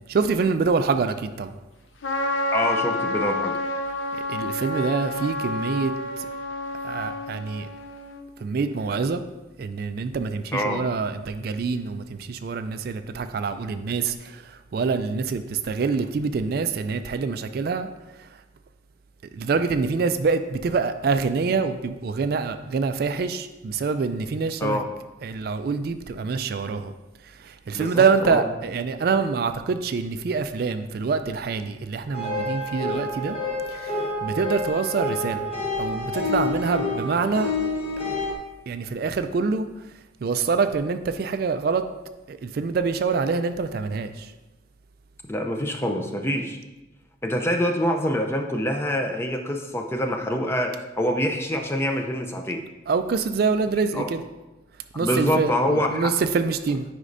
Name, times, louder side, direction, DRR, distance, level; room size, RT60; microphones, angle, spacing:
voice 1, 0.1-1.5 4.3-6.3 6.8-7.7 8.4-9.2 9.6-14.4 14.7-17.9 19.3-24.8 25.2-26.9 27.4-33.4 33.7-33.9 34.2-35.4 35.8-37.5 38.7-39.7 40.2-41.8 42.3-44.3 52.9-54.2 55.0-56.8, right 5 dB, 50° right, 9 dB, 0.3 m, -25 dB
Trumpet, 2.0-8.2, left 2 dB, 85° left, 0.6 m, -29 dB
voice 2, 2.5-3.5 10.5-10.8 24.6-24.9 27.7-28.5 45.3-46.6 47.2-52.6 53.9-54.1 54.9-56.1, equal, 15° left, 4 dB, 0.5 m, -25 dB
sound 1, 32.1-38.3, left 2 dB, 30° left, 1.1 m, -28 dB
9.7 x 5.1 x 2.6 m, 1.0 s
head